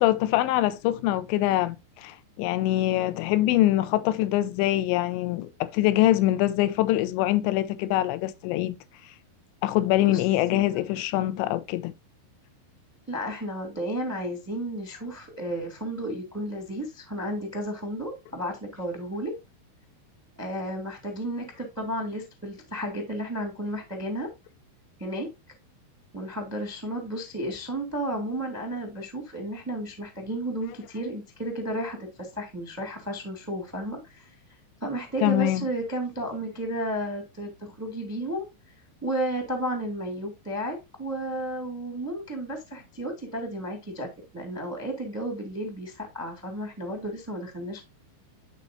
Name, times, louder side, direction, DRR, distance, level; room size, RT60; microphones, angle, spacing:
voice 1, 0.0-8.8 9.6-11.9 35.2-35.7, left 15 dB, 85° left, 2.8 m, -24 dB
voice 2, 13.1-19.3 20.4-24.3 25.0-25.3 26.1-34.3 34.8-38.5 39.0-44.1 44.3-47.8, right 1 dB, 10° right, 0.7 m, -33 dB
11.5 x 4.3 x 2.6 m
omnidirectional pair, 5.4 m